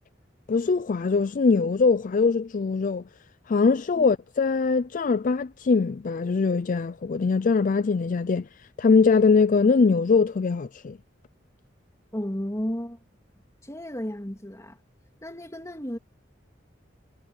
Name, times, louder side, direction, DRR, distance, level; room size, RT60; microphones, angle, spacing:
voice 1, 0.5-3.0 3.5-8.5 8.8-11.0, left 4 dB, 45° left, 0.4 m, -22 dB
voice 2, 12.1-13.0 13.6-14.8 15.2-16.0, equal, 15° left, 2.9 m, -33 dB
head